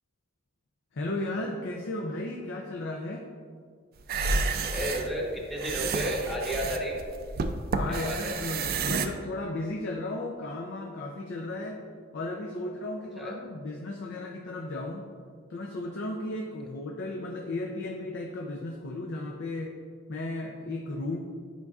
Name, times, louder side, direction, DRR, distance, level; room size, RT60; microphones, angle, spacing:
voice 1, 0.9-3.3 7.7-11.8 12.1-15.0 15.5-19.7 20.1-21.2, left 2 dB, 60° left, 0 dB, 0.6 m, -35 dB
sound 1, 4.0-9.1, right 4 dB, 45° right, 0.4 m, -30 dB
voice 2, 4.6-7.0 7.9-8.4 13.2-13.4, equal, ahead, -2 dB, 1.0 m, -32 dB
9.3 x 5.3 x 2.4 m, 2.1 s
head